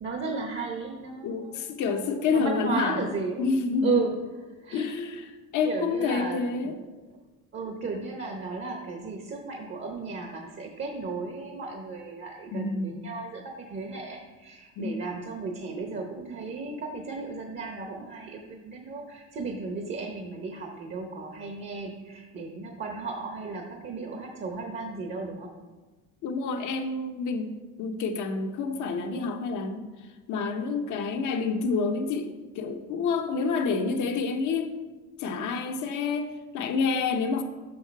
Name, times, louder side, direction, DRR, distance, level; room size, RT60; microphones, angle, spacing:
voice 1, 0.0-3.5 3.8-4.1 4.6-4.9 5.6-6.4 7.5-25.5, right 4 dB, 35° right, 2 dB, 0.9 m, -35 dB
voice 2, 1.2-3.1 3.4-4.0 4.7-6.8 12.5-13.0 14.8-15.0 26.2-27.5 27.8-29.9 30.3-34.7 35.2-37.4, left 4 dB, 60° left, 5 dB, 1.0 m, -28 dB
6.4 x 5.6 x 4.6 m, 1.3 s
supercardioid pair, 105°, 34 cm